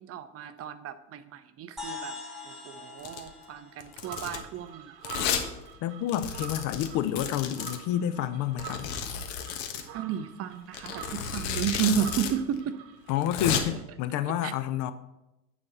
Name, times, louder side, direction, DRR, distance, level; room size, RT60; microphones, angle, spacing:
voice 1, 0.0-2.2 2.4-5.0 9.9-12.7 14.4-14.5, right 9 dB, 30° right, 11 dB, 0.6 m, -32 dB
sound 1, 1.8-5.5, left 4 dB, ahead, 3.0 m, -44 dB
Domestic sounds home sounds, 3.0-3.3 3.8-4.4 5.0-5.5 5.7-5.8 6.1-7.8 8.6-9.9 10.7-12.3 12.6-12.7 13.1-13.6, left 8 dB, 55° left, 1.4 m, -32 dB
sound 2, 4.0-13.6, right 10 dB, 50° right, 1.2 m, -46 dB
voice 2, 5.8-8.9 13.1-14.9, left 11 dB, 40° left, 12 dB, 0.5 m, -29 dB
9.7 x 4.1 x 6.7 m, 0.95 s
hypercardioid pair, 90°, 49 cm